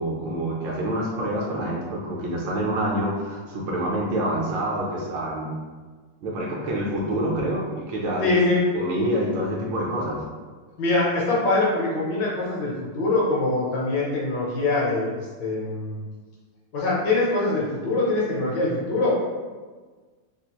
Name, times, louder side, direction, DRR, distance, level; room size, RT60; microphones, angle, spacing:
voice 1, 0.0-5.5 6.2-8.3 8.7-10.2, right 1 dB, 75° right, -3 dB, 1.2 m, -27 dB
voice 2, 8.2-8.6 10.8-16.0 16.7-19.3, left 2 dB, 70° left, -5 dB, 1.1 m, -23 dB
3.4 x 2.3 x 2.8 m, 1.4 s
omnidirectional pair, 2.3 m